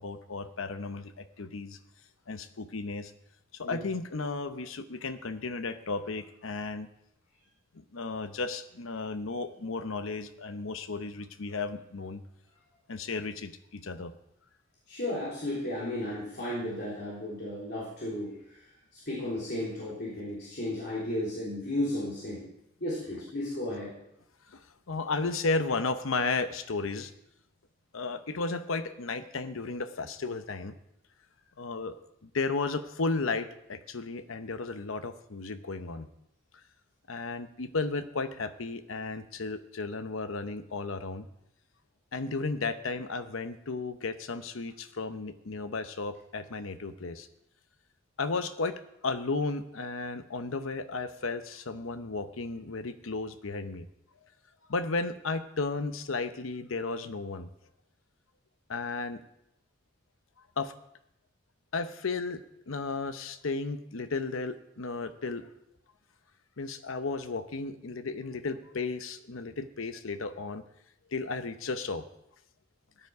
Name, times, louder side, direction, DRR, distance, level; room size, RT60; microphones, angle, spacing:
voice 1, 0.0-1.8 2.3-3.1 3.6-6.9 7.7-12.2 12.9-14.1 24.5-24.6 24.9-27.1 27.9-30.7 31.6-32.0 32.3-36.1 37.1-41.3 42.1-47.3 48.2-53.9 54.7-57.5 58.7-59.2 60.6-60.7 61.7-62.4 62.7-65.5 66.6-70.6 71.1-72.0, left 3 dB, 90° left, 10 dB, 0.8 m, -34 dB
voice 2, 14.9-18.6 18.9-22.5 22.8-23.9, left 1 dB, 55° left, -7 dB, 3.4 m, -34 dB
14.0 x 9.7 x 4.7 m, 0.80 s
head